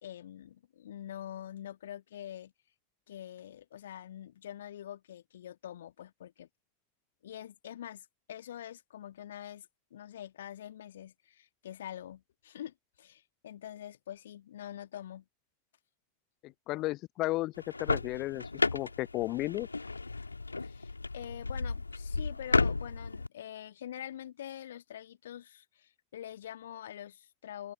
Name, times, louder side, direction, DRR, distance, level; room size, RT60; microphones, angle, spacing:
voice 1, 0.0-2.5 3.1-6.5 7.2-15.3 20.6-27.7, left 11 dB, 60° left, 1.9 m, -45 dB
voice 2, 16.4-17.5 17.8-19.7, left 18 dB, 40° left, 0.5 m, -34 dB
sound 1, 17.6-23.3, left 3 dB, 80° left, 1.8 m, -33 dB
open air
figure-of-eight pair, 90°, 0 cm